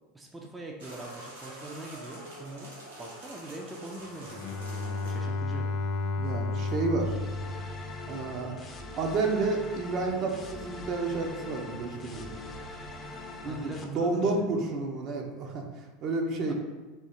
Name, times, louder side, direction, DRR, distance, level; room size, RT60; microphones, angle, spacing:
voice 1, 0.1-2.7 3.0-5.7 13.4-14.5 16.5-16.6, right 2 dB, 15° right, 0 dB, 0.5 m, -42 dB
sound 1, 0.8-7.1, right 1 dB, 80° right, 1.2 m, -47 dB
Bowed string instrument, 4.2-8.6, left 3 dB, 50° left, 0.3 m, -33 dB
voice 2, 6.2-7.2 8.1-8.5 9.0-12.3 13.4-15.6 16.0-16.5, right 3 dB, 45° right, 1 dB, 0.8 m, -30 dB
sound 2, 7.0-13.8, left 2 dB, 30° left, 0.7 m, -42 dB
3.6 x 2.7 x 4.2 m, 1.3 s
figure-of-eight pair, 80°, 0 cm